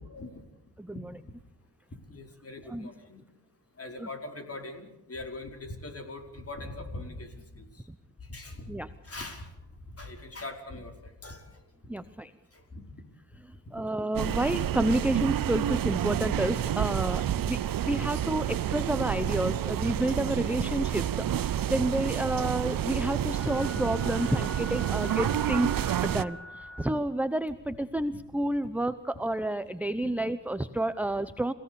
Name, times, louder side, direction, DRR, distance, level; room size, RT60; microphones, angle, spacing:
voice 1, 0.1-0.4 2.0-3.2 3.8-7.9 8.2-8.7 9.0-9.5 9.9-11.6 12.5-13.0 13.6-13.8 19.8-19.9 22.6-22.7 24.9-25.0 26.1-26.2 29.6-29.7 30.0-30.1, left 2 dB, 35° left, 4 dB, 4.9 m, -42 dB
voice 2, 0.8-1.1 2.7-2.9 4.0-4.1 8.7-8.9 11.9-12.3 13.7-17.6 17.8-21.1 21.4-26.4 26.8-31.5, right 1 dB, 5° right, 11 dB, 0.8 m, -30 dB
sound 1, 14.1-26.2, right 11 dB, 55° right, 0.7 m, -29 dB
sound 2, 20.3-26.9, left 1 dB, 90° left, 6.9 m, -46 dB
29.0 x 17.0 x 7.0 m, 0.85 s
cardioid pair, 95°, 42 cm